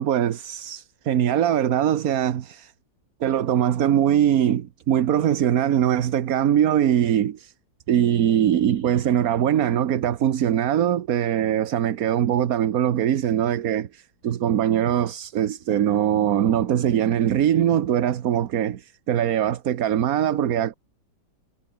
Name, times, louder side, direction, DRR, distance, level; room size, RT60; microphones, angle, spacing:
voice 1, 0.0-2.7 3.2-7.5 7.9-20.7, right 10 dB, 60° right, 1.3 m, -22 dB
omnidirectional pair, 1.9 m